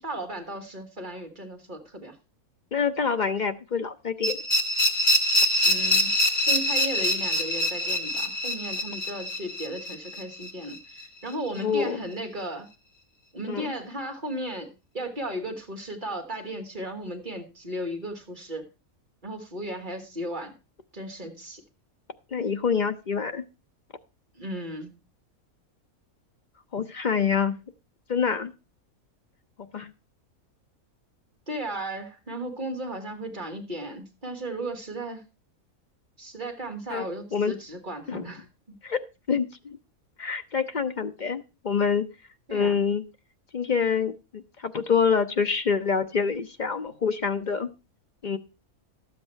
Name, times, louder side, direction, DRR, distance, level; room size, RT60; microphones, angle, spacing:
voice 1, 0.0-2.2 5.6-12.7 13.3-18.7 19.2-20.5 20.9-21.6 24.4-24.9 31.5-35.2 36.2-38.5 42.5-42.8, right 1 dB, 35° right, 4 dB, 2.1 m, -35 dB
voice 2, 2.7-4.4 11.6-12.0 13.5-13.7 22.3-23.5 26.7-27.6 28.1-28.5 29.7-29.9 36.9-37.1 37.3-37.5 38.1-38.3 38.8-39.8 40.2-42.1 42.5-43.0 43.5-47.7 48.2-48.4, left 6 dB, 50° left, 8 dB, 0.6 m, -26 dB
sound 1, 4.2-11.0, left 1 dB, 90° left, 2.0 m, -25 dB
12.5 x 8.1 x 4.4 m, 0.28 s
omnidirectional pair, 1.5 m